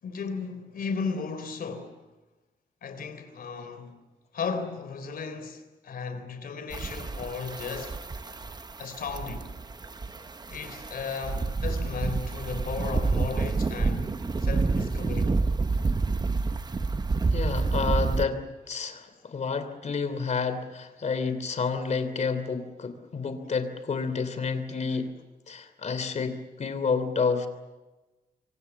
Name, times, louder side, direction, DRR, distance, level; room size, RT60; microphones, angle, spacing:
voice 1, 0.0-2.0 2.8-4.0 4.3-8.0 8.8-9.5 10.5-15.4, left 5 dB, 85° left, 3.6 m, -35 dB
sound 1, 6.7-18.3, right 3 dB, 30° right, 1.0 m, -28 dB
voice 2, 17.3-25.1 25.5-27.5, left 5 dB, 50° left, 3.0 m, -30 dB
27.0 x 24.0 x 7.2 m
wide cardioid pair, 130°, 15 cm